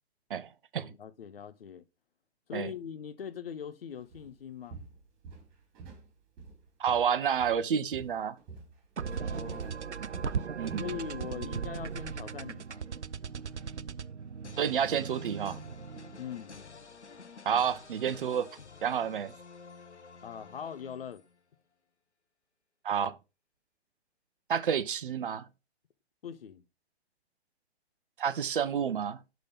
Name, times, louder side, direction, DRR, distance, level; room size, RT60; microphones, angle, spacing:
voice 1, 0.3-0.9 2.5-2.7 6.8-8.4 10.0-10.1 10.6-10.9 14.6-15.6 17.4-18.5 18.8-19.3 22.8-23.2 24.5-25.5 28.2-29.2, right 8 dB, 50° right, 0.8 m, -30 dB
voice 2, 0.9-1.8 2.5-4.8 9.1-9.8 10.8-12.8 16.2-16.6 20.2-21.2 26.2-26.6, left 8 dB, 55° left, 0.9 m, -41 dB
Walk footsteps, 4.1-4.3 4.7-6.1 6.4-7.7 7.9-11.5 11.8-12.0 12.5-12.6, right 4 dB, 30° right, 3.3 m, -48 dB
sound 1, 9.0-16.3, right 6 dB, 90° right, 0.5 m, -38 dB
sound 2, 14.4-21.4, left 4 dB, 85° left, 1.0 m, -50 dB
11.5 x 3.9 x 3.6 m
figure-of-eight pair, 125°, 33 cm